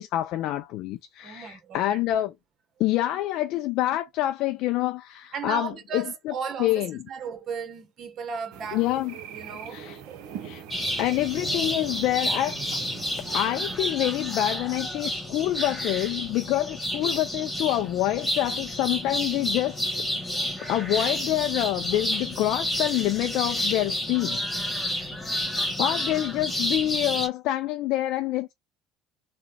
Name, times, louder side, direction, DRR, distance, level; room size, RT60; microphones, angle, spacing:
voice 1, 0.0-2.3 2.8-6.3 6.6-7.0 8.7-9.1 9.7-10.0 10.4-10.6 11.0-12.6 13.3-19.8 20.6-24.4 24.9-25.1 25.8-28.5, left 14 dB, 65° left, 0.3 m, -26 dB
voice 2, 1.2-2.0 5.3-10.5 10.8-10.9, right 5 dB, 50° right, 1.1 m, -36 dB
sound 1, 8.5-13.8, right 8 dB, 70° right, 0.7 m, -41 dB
sound 2, 10.7-27.3, left 1 dB, 10° left, 1.5 m, -30 dB
3.8 x 2.2 x 3.2 m
hypercardioid pair, 75°, 0 cm